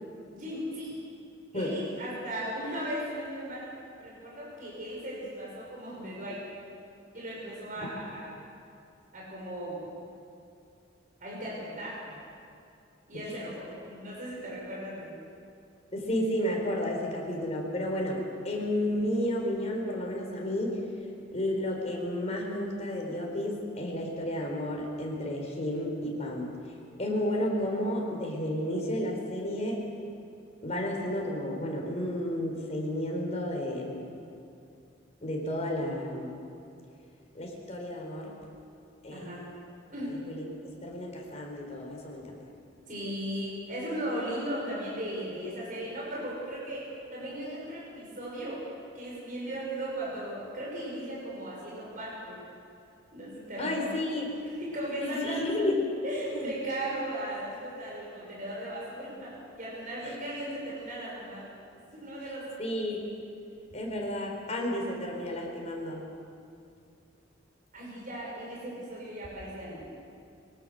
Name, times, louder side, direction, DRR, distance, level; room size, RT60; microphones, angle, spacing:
voice 1, 0.1-0.9 1.5-3.7 4.0-6.4 7.1-8.3 9.1-9.8 11.2-12.0 13.1-15.1 39.1-39.4 39.9-40.1 42.9-48.6 48.9-52.4 53.1-53.9 54.6-55.7 56.0-61.5 61.9-62.5 67.7-69.8, right 1 dB, 45° right, -5 dB, 5.9 m, -37 dB
voice 2, 15.9-20.8 21.3-29.8 30.6-34.1 35.2-36.3 37.3-38.3 39.0-39.3 40.0-42.5 53.6-54.3 55.0-55.8 56.3-56.5 60.0-60.2 62.6-63.1 63.7-66.0, left 1 dB, 35° left, 0 dB, 4.4 m, -32 dB
23.0 x 18.0 x 6.6 m, 2.5 s
head